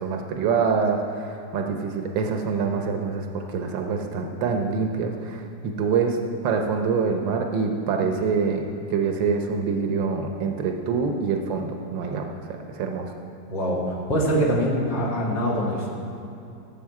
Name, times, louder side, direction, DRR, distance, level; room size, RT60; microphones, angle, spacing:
voice 1, 0.0-8.6 8.9-13.1, right 5 dB, 90° right, 3 dB, 1.6 m, -25 dB
voice 2, 13.5-15.9, equal, 70° left, -4 dB, 2.7 m, -24 dB
18.0 x 7.3 x 4.7 m, 2.8 s
omnidirectional pair, 2.0 m